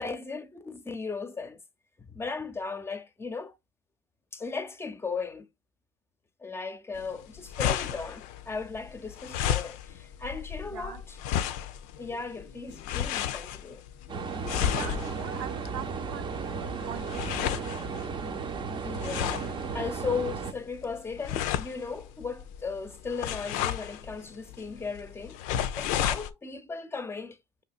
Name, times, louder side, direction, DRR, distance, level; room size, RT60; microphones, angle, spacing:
voice 1, 0.0-1.6 2.0-3.6 4.3-5.5 6.4-11.2 12.0-13.8 18.8-19.4 19.7-25.4 25.7-27.4, left 4 dB, 20° left, 0.7 m, -36 dB
sound 1, 6.9-26.3, left 10 dB, 70° left, 0.4 m, -34 dB
voice 2, 10.6-11.0 11.3-11.4 14.6-17.2, right 10 dB, 80° right, 0.6 m, -42 dB
sound 2, 14.1-20.5, right 5 dB, 40° right, 0.7 m, -35 dB
5.6 x 2.8 x 2.4 m
supercardioid pair, 80°, 13 cm